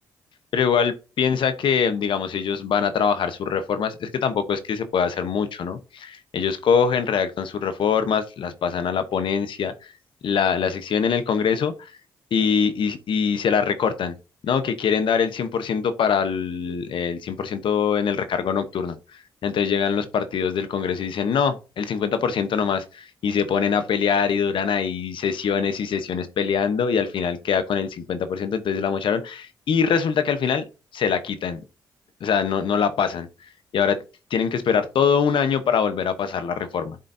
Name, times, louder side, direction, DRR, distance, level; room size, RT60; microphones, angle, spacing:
voice 1, 0.5-9.9 10.2-11.9 12.3-14.1 14.4-30.6 30.9-31.6 32.2-33.3 33.7-34.0 34.3-37.0, left 6 dB, 70° left, 1.0 m, -23 dB
11.5 x 3.9 x 2.7 m
supercardioid pair, 60°, 9 cm